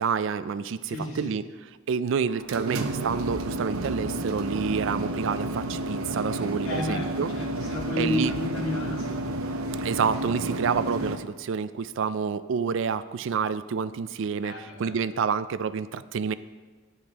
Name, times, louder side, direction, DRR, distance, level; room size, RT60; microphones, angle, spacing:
voice 1, 0.0-1.4 1.9-7.3 8.0-8.3 9.8-16.3, right 6 dB, 65° right, 15 dB, 0.3 m, -28 dB
voice 2, 0.8-1.4 6.6-9.2 14.4-15.0, left 2 dB, 70° left, -3 dB, 2.2 m, -32 dB
sound 1, 2.3-11.2, right 1 dB, 90° right, 0.7 m, -31 dB
sound 2, 2.8-11.2, left 3 dB, 50° left, 0.6 m, -46 dB
11.0 x 9.7 x 2.9 m, 1.3 s
head